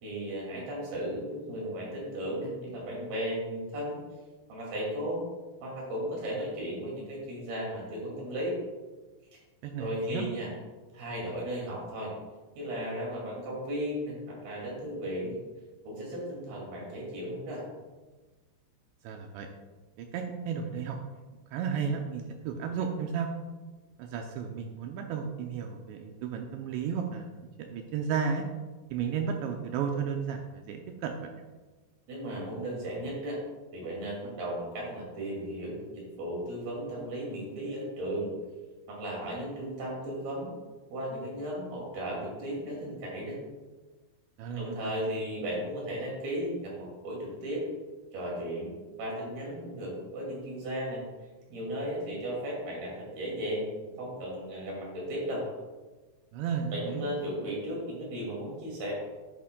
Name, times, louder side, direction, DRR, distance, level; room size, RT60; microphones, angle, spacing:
voice 1, 0.0-4.0 4.5-5.2 5.6-8.6 9.8-10.5 10.9-12.1 12.6-15.4 15.8-17.7 32.1-33.4 33.7-38.3 38.9-40.5 40.9-43.4 44.6-47.6 48.1-48.7 49.0-51.0 51.5-53.7 54.0-55.4 56.7-58.9, equal, 55° right, -3 dB, 3.9 m, -35 dB
voice 2, 9.6-10.3 19.0-19.5 20.0-21.0 21.5-23.3 24.0-28.4 28.9-31.4 44.4-44.9 56.3-57.1, right 6 dB, 85° right, 3 dB, 2.6 m, -33 dB
11.0 x 8.8 x 2.2 m, 1.3 s
omnidirectional pair, 5.6 m